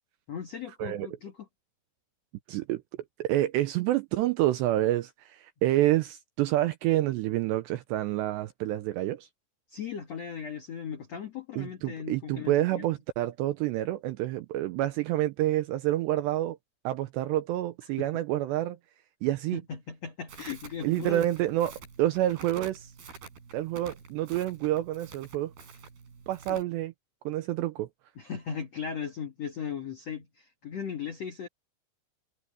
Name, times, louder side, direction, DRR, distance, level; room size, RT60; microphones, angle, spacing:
voice 1, 0.3-1.5 9.7-12.8 18.0-18.1 19.5-21.2 26.5-26.6 28.1-31.5, left 7 dB, 75° left, 1.5 m, -37 dB
voice 2, 2.5-2.8 3.2-9.3 11.6-16.6 16.8-18.8 19.2-19.6 20.8-22.9 23.5-25.5 26.3-26.9 27.3-27.9, right 14 dB, 85° right, 2.5 m, -28 dB
Crackle, 20.3-26.6, right 5 dB, 55° right, 7.0 m, -48 dB
omnidirectional pair, 5.7 m